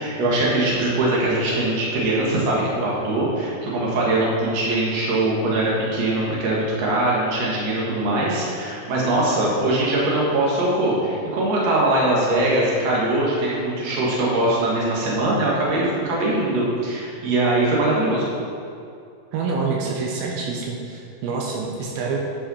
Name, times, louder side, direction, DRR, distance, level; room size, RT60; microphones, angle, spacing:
voice 1, 0.0-18.3, right 2 dB, 50° right, -5 dB, 2.5 m, -22 dB
voice 2, 19.3-22.2, right 4 dB, 85° right, -1 dB, 2.6 m, -26 dB
11.0 x 5.6 x 4.3 m, 2.5 s
omnidirectional pair, 4.3 m